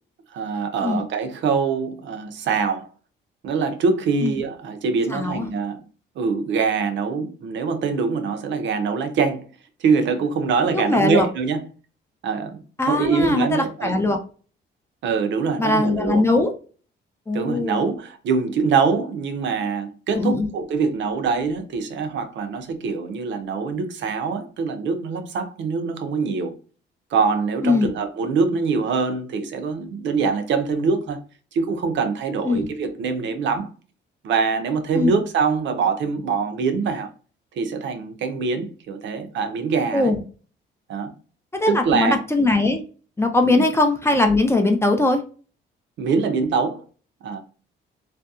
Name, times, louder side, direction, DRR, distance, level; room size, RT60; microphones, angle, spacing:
voice 1, 0.3-2.9 3.4-5.8 6.2-9.4 9.8-11.6 12.2-12.6 12.9-14.0 15.0-16.2 17.3-26.5 27.1-31.2 31.5-33.7 34.2-37.1 37.6-40.1 40.9-41.1 41.7-42.2 43.4-43.7 46.0-46.8 47.2-47.4, right 5 dB, 70° right, 0.5 m, -24 dB
voice 2, 5.1-5.5 10.7-11.3 12.8-14.2 15.6-16.5 17.3-17.8 20.1-20.5 27.6-27.9 32.4-32.7 34.9-35.1 39.9-40.2 41.5-42.8 43.2-45.2, left 2 dB, 15° left, 0.4 m, -20 dB
2.7 x 2.2 x 2.3 m
cardioid pair, 90°, 20 cm